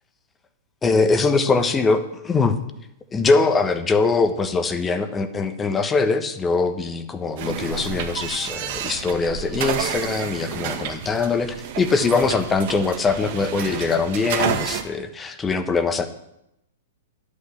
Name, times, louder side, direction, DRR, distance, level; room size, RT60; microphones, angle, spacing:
voice 1, 0.8-2.6 3.1-16.1, left 4 dB, 15° left, 9 dB, 1.2 m, -22 dB
sound 1, 7.4-14.8, right 8 dB, 55° right, 1.7 m, -30 dB
11.5 x 8.5 x 6.9 m, 0.84 s
hypercardioid pair, 115°, 0 cm